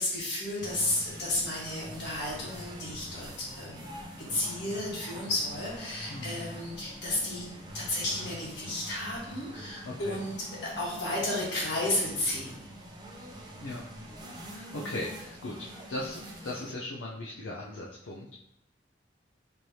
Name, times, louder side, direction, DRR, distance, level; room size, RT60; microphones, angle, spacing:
voice 1, 0.0-3.9 4.3-7.5 7.7-10.3 10.6-12.6, left 1 dB, 65° left, -5 dB, 1.5 m, -32 dB
sound 1, 0.6-16.7, equal, 20° right, 0.5 m, -44 dB
voice 2, 9.8-10.2 13.6-13.8 14.5-18.4, left 1 dB, 80° left, -3 dB, 0.5 m, -38 dB
4.5 x 3.2 x 2.7 m, 0.80 s
head